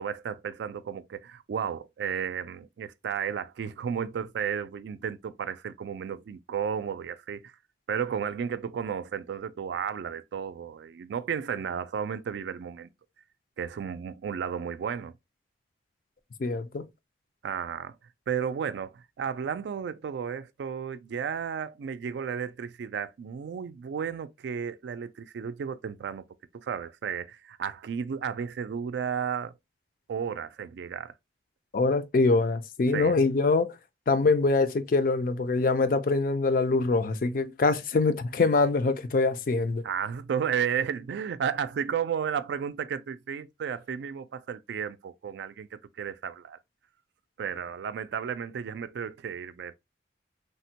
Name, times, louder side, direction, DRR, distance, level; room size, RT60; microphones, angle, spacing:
voice 1, 0.0-7.5 7.9-12.9 13.6-15.1 17.4-17.9 18.3-26.3 26.5-29.5 30.1-31.1 32.9-33.2 39.8-46.6 47.4-49.7, right 7 dB, 70° right, 0.3 m, -33 dB
voice 2, 16.4-16.8 31.7-33.7 34.1-39.8, left 3 dB, 50° left, 0.4 m, -24 dB
3.4 x 2.1 x 2.7 m
head